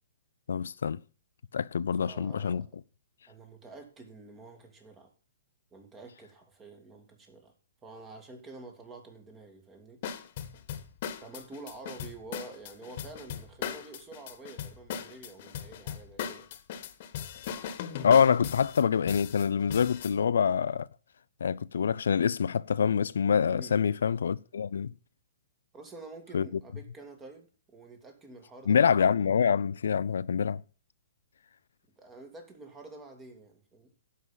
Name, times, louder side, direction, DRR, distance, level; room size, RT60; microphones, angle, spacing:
voice 1, 0.5-1.0 1.5-2.6 18.0-20.9 21.4-24.9 26.3-26.5 28.7-30.6, left 7 dB, 80° left, 0.5 m, -25 dB
voice 2, 2.0-2.7 3.3-5.1 5.7-7.5 7.8-10.0 11.2-16.5 23.5-24.0 25.7-29.2 32.0-33.9, right 2 dB, 20° right, 2.6 m, -48 dB
sound 1, 10.0-20.1, left 9 dB, 50° left, 1.5 m, -38 dB
11.5 x 5.6 x 7.2 m
hypercardioid pair, 135°, 0 cm